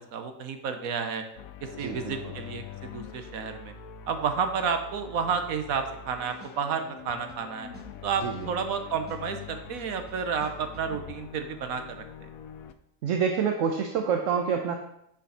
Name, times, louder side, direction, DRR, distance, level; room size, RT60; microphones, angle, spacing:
voice 1, 0.1-1.2 1.6-3.7 4.1-7.7 8.0-12.3, right 6 dB, 85° right, 7 dB, 1.3 m, -31 dB
sound 1, 1.3-12.7, left 7 dB, 90° left, 1.1 m, -44 dB
voice 2, 1.8-2.3 8.2-8.5 13.0-14.8, right 6 dB, 70° right, 4 dB, 1.1 m, -27 dB
sound 2, 5.7-6.1 6.4-8.8 9.1-10.9, right 1 dB, 10° right, 1.0 m, -51 dB
10.0 x 5.2 x 4.1 m, 0.76 s
omnidirectional pair, 1.4 m